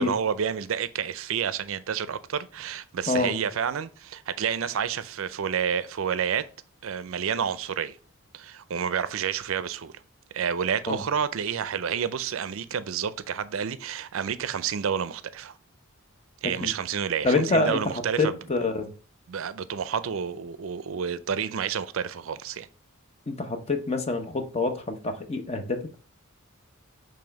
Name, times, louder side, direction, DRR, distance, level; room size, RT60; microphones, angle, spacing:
voice 1, 0.0-6.5 6.8-8.0 8.3-9.9 10.3-15.5 16.4-18.3 19.3-22.7, right 7 dB, 65° right, 0.4 m, -29 dB
voice 2, 3.1-3.4 10.9-11.0 16.4-16.7 17.2-18.9 23.3-26.1, left 3 dB, 30° left, 0.8 m, -27 dB
6.8 x 3.3 x 5.2 m
head